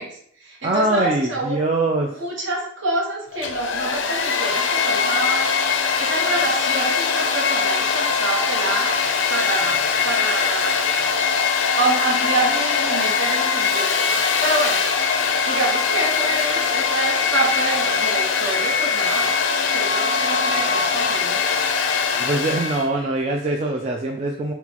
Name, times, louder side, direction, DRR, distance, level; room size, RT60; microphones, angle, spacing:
voice 1, 0.0-1.6 2.1-5.5 6.0-10.8 11.7-14.8 15.5-19.4 19.7-21.4 22.9-23.2, right 2 dB, 60° right, -1 dB, 1.1 m, -27 dB
voice 2, 0.6-2.1 22.2-24.5, right 2 dB, 30° right, 0 dB, 0.3 m, -22 dB
Domestic sounds home sounds, 3.3-22.9, left 5 dB, 60° left, 0.5 m, -21 dB
5.9 x 2.3 x 2.9 m, 0.64 s
head